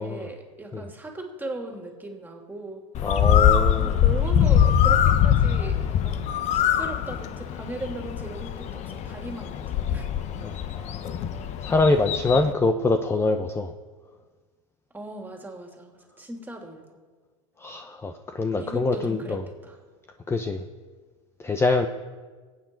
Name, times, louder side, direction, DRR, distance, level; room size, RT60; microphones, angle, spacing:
voice 1, 0.0-2.8 3.8-10.1 14.9-16.9 18.6-19.4 19.6-19.8, right 2 dB, 10° right, 2 dB, 2.8 m, -38 dB
Bird, 2.9-12.5, left 9 dB, 40° left, 1.1 m, -23 dB
voice 2, 3.0-4.0 10.4-11.1 11.6-13.7 17.6-19.4 20.3-20.6 21.4-21.9, left 3 dB, 15° left, 7 dB, 0.8 m, -24 dB
22.0 x 9.1 x 4.5 m, 1.4 s
hypercardioid pair, 105°, 17 cm